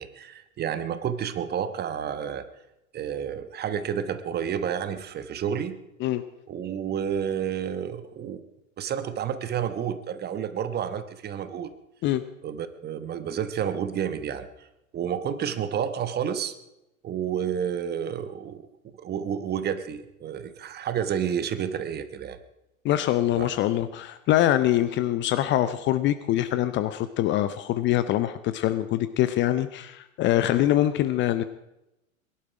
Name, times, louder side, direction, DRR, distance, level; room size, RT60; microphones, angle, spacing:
voice 1, 0.0-2.5 2.9-5.8 6.5-8.4 8.8-11.7 12.4-14.7 14.9-16.5 17.0-18.7 19.0-22.4 23.4-23.5, right 8 dB, 25° right, 12 dB, 1.1 m, -30 dB
voice 2, 22.8-31.4, left 13 dB, 30° left, 13 dB, 0.6 m, -24 dB
21.5 x 11.5 x 4.9 m, 0.90 s
figure-of-eight pair, 95°, 41 cm